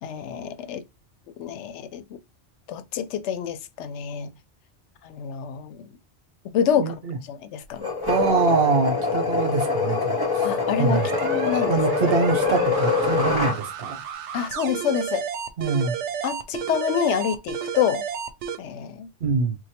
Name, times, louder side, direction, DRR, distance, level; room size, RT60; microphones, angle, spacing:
voice 1, 0.0-0.8 1.4-2.2 2.7-4.3 5.0-5.9 6.5-6.9 7.3-7.9 10.4-11.8 14.3-15.2 16.2-18.0 18.6-19.1, left 8 dB, 85° left, 0.9 m, -27 dB
voice 2, 6.7-7.2 8.1-10.5 10.8-11.1 11.7-14.0 15.6-16.0 19.2-19.6, right 4 dB, 60° right, 1.0 m, -24 dB
sound 1, 7.8-13.6, left 4 dB, 20° left, 0.9 m, -24 dB
sound 2, 10.9-18.6, right 8 dB, 85° right, 0.9 m, -32 dB
3.1 x 2.2 x 4.2 m
omnidirectional pair, 1.2 m